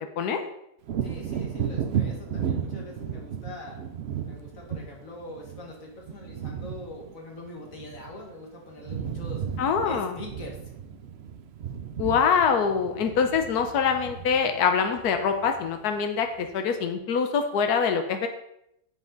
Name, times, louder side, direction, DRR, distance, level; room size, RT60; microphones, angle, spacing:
Wind / Thunder, 0.8-8.4 8.7-15.9 16.4-16.5, right 8 dB, 60° right, 0.7 m, -34 dB
voice 1, 1.0-3.8 4.3-9.4 9.8-10.6, left 2 dB, 60° left, 0 dB, 2.1 m, -42 dB
voice 2, 9.6-10.2 12.0-18.3, left 6 dB, 80° left, 6 dB, 1.4 m, -24 dB
9.8 x 7.4 x 4.0 m, 0.79 s
omnidirectional pair, 1.6 m